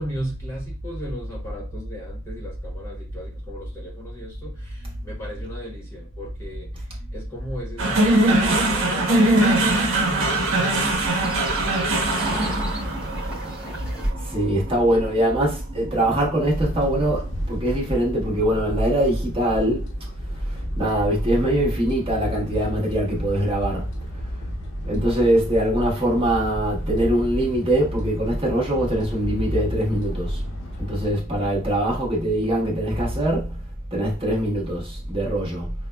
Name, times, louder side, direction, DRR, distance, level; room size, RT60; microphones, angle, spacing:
voice 1, 0.0-6.7 7.1-14.0, equal, 15° left, 0.9 m, -37 dB
sound 1, 7.8-16.2, right 2 dB, 80° right, 0.8 m, -22 dB
sound 2, 9.0-14.1, right 1 dB, 5° right, 1.2 m, -36 dB
voice 2, 14.2-23.9 24.2-24.3 24.8-30.4 30.8-33.6 33.9-35.7, right 1 dB, 25° right, 1.2 m, -22 dB
sound 3, 16.5-31.1, equal, 70° left, 0.8 m, -34 dB
5.4 x 2.1 x 2.2 m
head